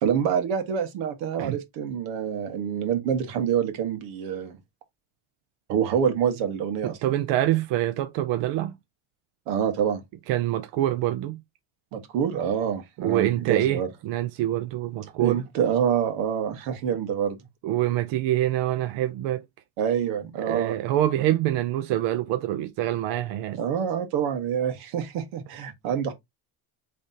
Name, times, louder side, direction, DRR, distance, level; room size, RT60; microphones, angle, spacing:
voice 1, 0.0-4.6 5.7-7.0 9.5-10.0 11.9-13.9 15.2-17.4 19.8-20.8 23.6-26.1, right 8 dB, 85° right, 1.5 m, -26 dB
voice 2, 6.8-8.8 10.3-11.4 13.0-15.4 17.6-19.4 20.4-23.6, right 13 dB, 60° right, 0.6 m, -25 dB
3.8 x 3.4 x 4.1 m
cardioid pair, 155°, 48 cm